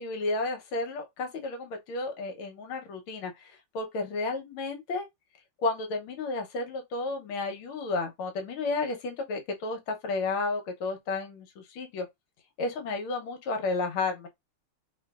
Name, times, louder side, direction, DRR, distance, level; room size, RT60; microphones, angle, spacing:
voice 1, 0.0-5.1 5.6-12.1 12.6-14.3, left 3 dB, 75° left, 1.6 m, -32 dB
3.2 x 3.0 x 2.3 m
omnidirectional pair, 2.4 m